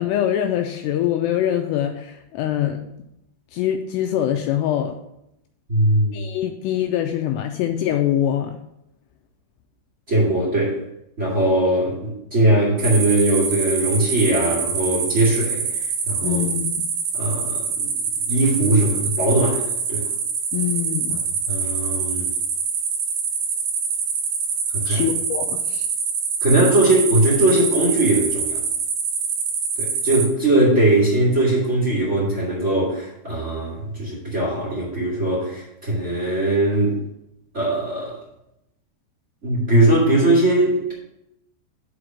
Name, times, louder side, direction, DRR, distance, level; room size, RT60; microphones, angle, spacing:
voice 1, 0.0-2.8 3.5-4.9 6.1-8.6 16.2-16.9 20.5-21.2 24.9-25.9, left 11 dB, 85° left, 5 dB, 2.4 m, -24 dB
voice 2, 5.7-6.2 10.1-10.8 11.2-16.4 17.1-17.9 18.3-19.6 19.9-20.0 21.5-22.3 24.7-25.0 26.4-28.6 29.8-37.0 37.5-38.2 39.4-40.9, right 1 dB, 45° right, -6 dB, 0.9 m, -20 dB
sound 1, 12.8-30.3, right 6 dB, 65° right, 2.2 m, -25 dB
6.3 x 5.1 x 6.1 m, 0.82 s
omnidirectional pair, 5.3 m